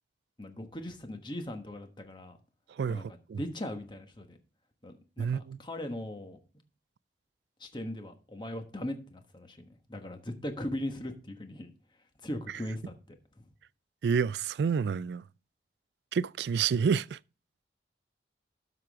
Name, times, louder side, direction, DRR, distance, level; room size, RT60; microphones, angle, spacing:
voice 1, 0.4-2.4 2.9-4.4 4.8-6.4 7.6-11.7 12.2-13.5, left 1 dB, 25° left, 1.2 m, -39 dB
voice 2, 2.8-3.4 5.2-5.6 14.0-15.2 16.1-17.2, right 6 dB, 70° right, 0.3 m, -29 dB
12.5 x 6.0 x 3.5 m
head